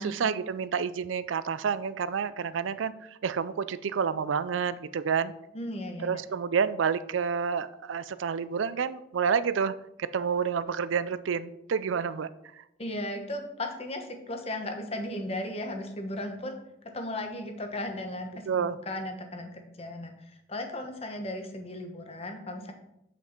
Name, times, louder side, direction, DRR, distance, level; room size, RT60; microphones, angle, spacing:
voice 1, 0.0-5.3 6.0-12.3 12.6-12.7 18.5-18.8, right 6 dB, 80° right, 15 dB, 0.4 m, -29 dB
voice 2, 5.5-6.2 12.8-16.5 16.9-22.7, left 1 dB, 30° left, 5 dB, 1.0 m, -36 dB
8.0 x 5.9 x 4.4 m, 0.83 s
head